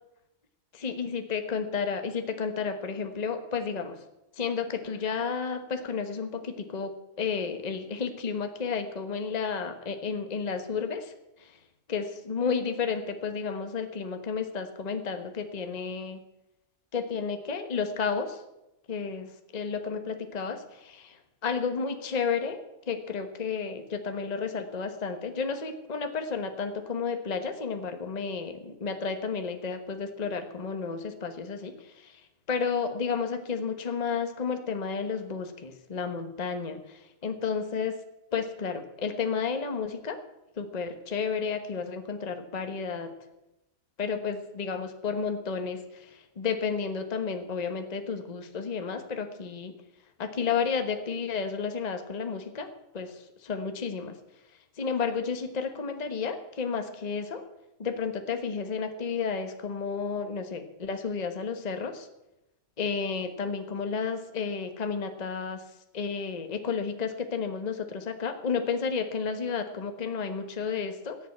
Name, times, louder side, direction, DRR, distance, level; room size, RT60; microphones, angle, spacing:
voice 1, 0.8-4.0 4.3-11.1 11.4-11.6 11.9-16.2 16.9-18.4 18.9-32.2 32.5-37.9 38.3-40.2 40.6-43.1 44.0-49.7 50.2-52.7 52.9-54.1 54.8-57.4 57.8-62.1 62.8-65.6 65.9-71.2, left 5 dB, 30° left, 7 dB, 1.2 m, -32 dB
17.0 x 7.3 x 8.6 m, 0.91 s
omnidirectional pair, 1.5 m